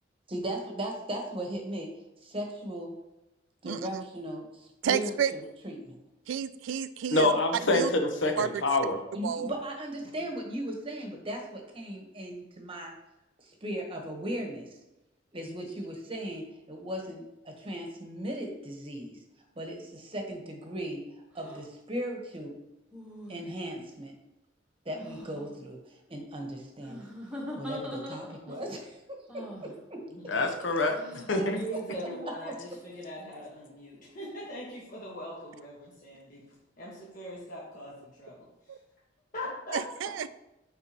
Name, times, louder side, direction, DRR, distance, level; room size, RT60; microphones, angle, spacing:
voice 1, 0.3-1.9 2.2-2.9 3.6-6.0 9.1-12.9 13.6-14.7 15.3-19.2 19.6-21.0 21.3-22.5 23.3-24.1 24.8-27.1 27.5-30.0 31.3-31.5, right 1 dB, 30° right, 2 dB, 1.1 m, -37 dB
voice 2, 3.6-4.0 4.8-5.3 6.3-7.3 7.7-7.9 8.4-8.6 9.2-9.5 38.7-38.8 39.7-40.3, right 8 dB, 85° right, 14 dB, 0.3 m, -30 dB
voice 3, 7.1-9.0 30.3-31.6, left 2 dB, 80° left, 5 dB, 1.0 m, -26 dB
sound 1, 21.4-21.6 22.9-23.8 24.9-25.5 26.8-28.6 29.3-29.7 30.9-31.4, equal, 5° right, 1.2 m, -42 dB
voice 4, 30.1-30.4 31.3-36.4 36.8-38.8 39.3-39.8, equal, 45° left, -6 dB, 1.4 m, -41 dB
9.0 x 3.8 x 2.9 m, 0.94 s
head